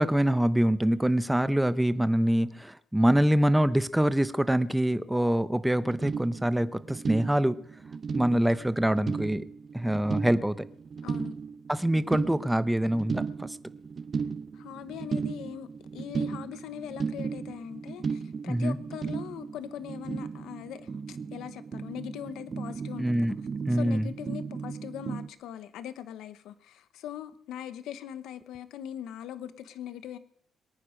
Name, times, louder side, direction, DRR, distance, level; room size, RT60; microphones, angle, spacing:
voice 1, 0.0-7.6 8.1-9.4 9.7-10.7 11.7-13.6 18.5-18.8 23.0-23.3 23.7-24.1, right 1 dB, 5° right, 0.8 m, -25 dB
sound 1, 5.8-25.3, right 5 dB, 40° right, 0.8 m, -36 dB
voice 2, 11.0-11.3 14.5-23.3 23.7-30.2, left 10 dB, 85° left, 1.0 m, -41 dB
23.0 x 9.5 x 5.2 m
cardioid pair, 90°, 0 cm